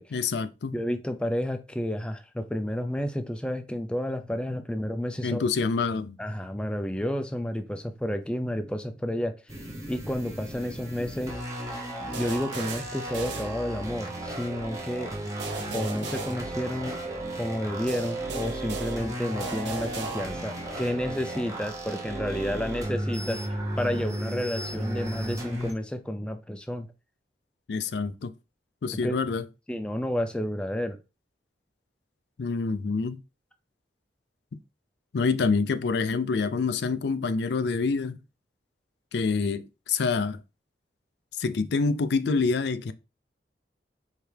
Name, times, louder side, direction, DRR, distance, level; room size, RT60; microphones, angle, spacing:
voice 1, 0.1-0.8 5.2-6.2 27.7-28.3 28.8-29.5 32.4-33.2 35.1-38.2 39.1-40.4 41.4-42.9, left 4 dB, 70° left, 0.4 m, -26 dB
voice 2, 0.7-5.4 6.2-9.6 9.9-11.4 12.0-15.1 15.7-17.0 17.3-23.5 23.8-26.9 29.0-29.2 29.7-31.0, equal, 5° left, 0.4 m, -31 dB
sound 1, 9.5-25.7, right 1 dB, 15° right, 0.8 m, -35 dB
sound 2, 12.1-14.1 15.4-17.1 17.9-20.6, right 4 dB, 90° right, 0.8 m, -38 dB
4.6 x 3.2 x 3.3 m
head